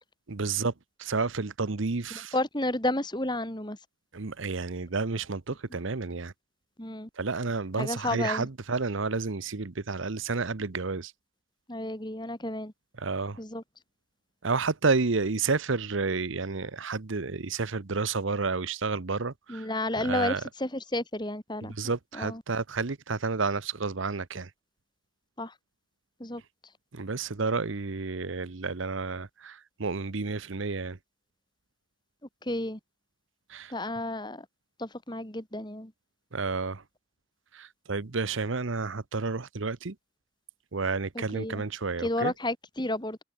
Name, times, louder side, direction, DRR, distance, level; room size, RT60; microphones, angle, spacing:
voice 1, 0.3-0.7 1.0-2.3 4.1-6.3 7.2-11.1 13.0-13.4 14.4-19.7 20.0-20.4 21.6-24.5 26.9-31.0 33.5-33.7 36.3-36.8 37.5-39.9 40.7-42.3, right 4 dB, 70° right, 1.0 m, -30 dB
voice 2, 2.1-3.8 6.8-7.1 7.8-8.5 11.7-12.7 13.4-13.6 19.5-21.7 22.1-22.4 25.4-25.5 26.2-26.4 32.4-32.8 33.7-34.5 34.8-35.9 41.1-41.6 42.0-43.2, left 1 dB, 20° left, 2.7 m, -31 dB
head